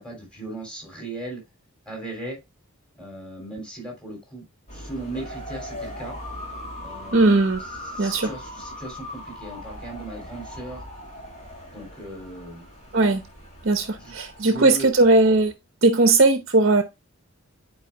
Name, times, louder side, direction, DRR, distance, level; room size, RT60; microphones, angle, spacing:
voice 1, 0.0-1.4 1.8-2.4 3.0-4.4 4.7-6.1 6.8-7.3 7.9-10.8 11.7-12.7 14.0-14.9, right 2 dB, 5° left, 3.2 m, -37 dB
sound 1, 4.7-15.5, left 1 dB, 35° left, 2.2 m, -39 dB
voice 2, 7.1-7.6 8.0-8.3 12.9-13.2 13.6-15.5 15.8-16.8, right 2 dB, 50° right, 0.8 m, -18 dB
11.0 x 4.6 x 2.2 m
head